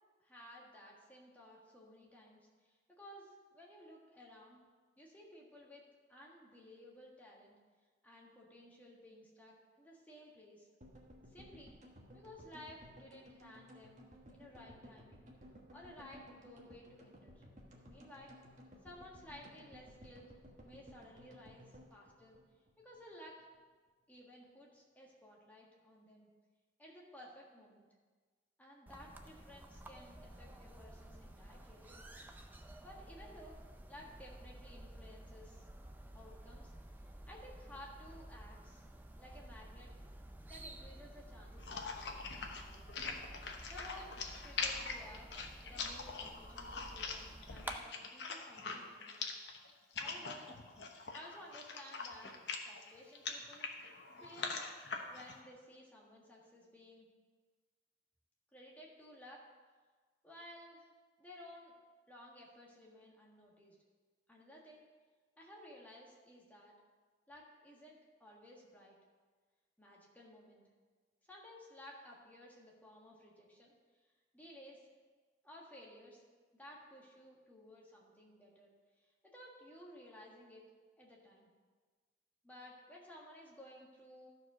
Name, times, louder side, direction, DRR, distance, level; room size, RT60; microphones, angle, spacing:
voice 1, 0.2-4.6 5.0-5.8 6.1-7.5 8.0-10.7 11.3-11.8 12.1-14.0 14.3-15.2 15.7-17.4 17.8-18.3 18.8-22.4 22.8-23.5 24.1-26.3 26.8-27.9 28.6-32.0 32.8-33.6 33.9-35.7 36.1-36.7 37.3-38.8 39.2-39.9 40.5-42.8 43.7-44.2 44.4-45.3 45.6-49.3 50.0-50.5 51.1-52.3 52.6-53.7 54.2-54.6 55.1-57.1 58.5-59.4 60.2-60.9 61.2-61.7 62.1-63.8 64.3-64.8 65.4-66.8 67.3-69.0 69.8-70.6 71.3-73.7 74.3-74.9 75.4-76.2 76.5-78.7 79.0-80.6 81.0-81.5 82.4-84.3, left 1 dB, 10° left, -3 dB, 1.6 m, -56 dB
sound 1, 10.8-23.0 23.3-23.4 23.5-23.6, equal, 40° right, 1.3 m, -58 dB
sound 2, 28.9-47.8, right 1 dB, 10° right, 0.5 m, -52 dB
sound 3, 41.6-55.4, left 4 dB, 70° left, 1.0 m, -43 dB
13.0 x 4.8 x 6.2 m, 1.4 s
head